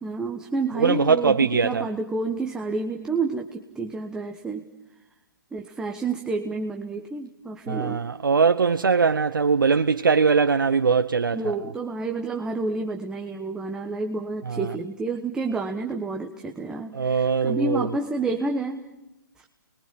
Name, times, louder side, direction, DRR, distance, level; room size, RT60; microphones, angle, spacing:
voice 1, 0.0-4.7 5.5-8.0 11.3-18.8, right 3 dB, 5° right, 1.1 m, -29 dB
voice 2, 0.8-1.8 7.7-11.4 14.5-14.7 16.9-17.9, right 5 dB, 70° right, 0.9 m, -21 dB
29.0 x 21.5 x 7.5 m
figure-of-eight pair, 140°, 11 cm